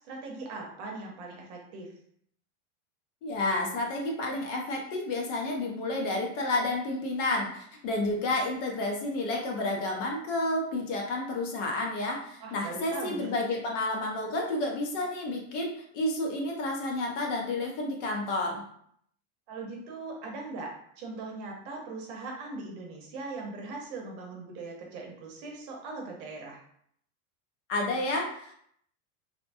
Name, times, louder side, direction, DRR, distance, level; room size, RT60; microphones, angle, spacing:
voice 1, 0.0-1.9 12.4-13.3 19.5-26.6, right 3 dB, 50° right, 0 dB, 0.8 m, -40 dB
voice 2, 3.2-18.6 27.7-28.5, left 2 dB, 55° left, 0 dB, 0.8 m, -30 dB
2.8 x 2.1 x 2.6 m, 0.67 s
supercardioid pair, 150°, 43 cm